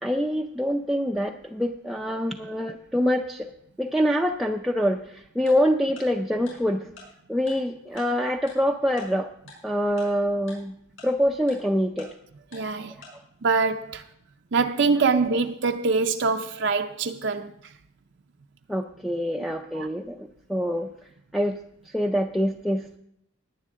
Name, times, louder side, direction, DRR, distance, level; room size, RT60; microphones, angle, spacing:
voice 1, 0.0-3.5 3.8-6.9 7.3-9.3 9.6-10.7 11.0-12.1 18.7-20.9 21.3-21.6 21.9-23.0, equal, ahead, 0.4 m, -25 dB
Tick-tock, 5.5-5.6 6.0-6.1 6.5-6.6 7.0-7.1 7.5-7.6 8.0-8.1 8.5-8.6 9.0-9.1 9.5-9.6 10.0-10.1 10.5-10.6 11.0-11.1 11.5-11.6 12.0-12.1 12.5-12.6 13.0-13.1, left 3 dB, 65° left, 6.6 m, -45 dB
voice 2, 12.5-12.9 13.4-14.0 14.5-17.7 19.4-19.5 19.7-19.9, right 4 dB, 55° right, 0.5 m, -24 dB
18.0 x 9.9 x 3.7 m
head